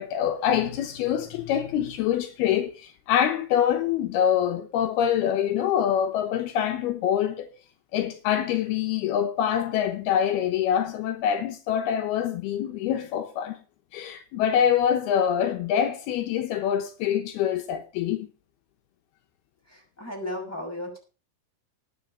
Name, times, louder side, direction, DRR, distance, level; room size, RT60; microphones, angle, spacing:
voice 1, 0.0-7.5 7.9-13.6 13.9-18.3, left 9 dB, 80° left, 3.0 m, -25 dB
voice 2, 19.7-21.0, left 1 dB, 5° left, 6.6 m, -35 dB
19.0 x 6.9 x 5.4 m
omnidirectional pair, 4.5 m